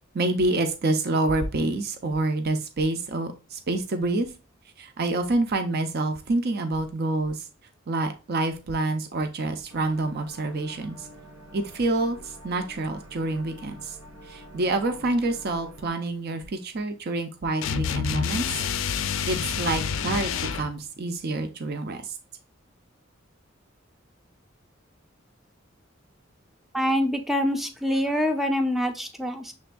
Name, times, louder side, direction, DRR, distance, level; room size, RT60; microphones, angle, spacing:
voice 1, 0.1-4.3 4.8-7.4 7.9-11.1 11.5-14.0 14.2-18.5 19.3-22.1, right 2 dB, 50° right, 7 dB, 0.5 m, -27 dB
sound 1, 9.7-15.9, equal, 80° right, 0.9 m, -47 dB
sound 2, 17.6-20.7, left 7 dB, 70° left, 0.4 m, -28 dB
voice 2, 26.7-29.5, equal, ahead, 5 dB, 0.5 m, -25 dB
6.3 x 3.4 x 2.2 m, 0.29 s
head